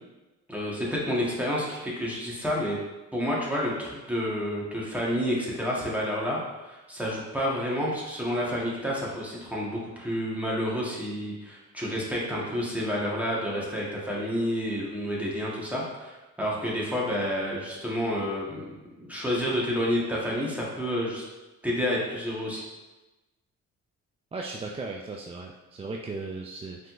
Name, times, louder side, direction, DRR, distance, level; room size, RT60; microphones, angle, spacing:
voice 1, 0.5-2.8 3.1-6.4 6.7-18.6 19.0-21.2 21.6-22.6, equal, 5° right, -5 dB, 1.4 m, -29 dB
voice 2, 24.3-26.9, right 3 dB, 20° right, 0 dB, 0.3 m, -36 dB
5.4 x 3.7 x 2.5 m, 1.1 s
cardioid pair, 90°, 30 cm